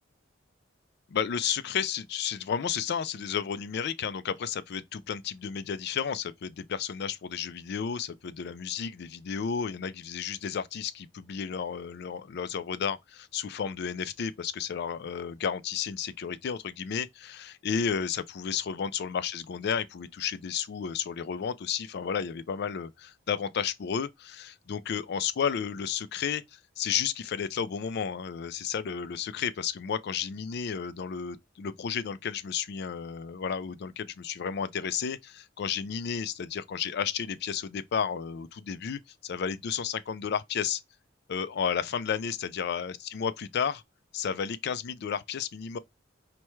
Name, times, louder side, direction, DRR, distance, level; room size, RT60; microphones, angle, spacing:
voice 1, 1.1-40.8 41.3-43.8 44.1-45.8, left 7 dB, 55° left, 0.4 m, -32 dB
4.4 x 2.2 x 3.0 m
head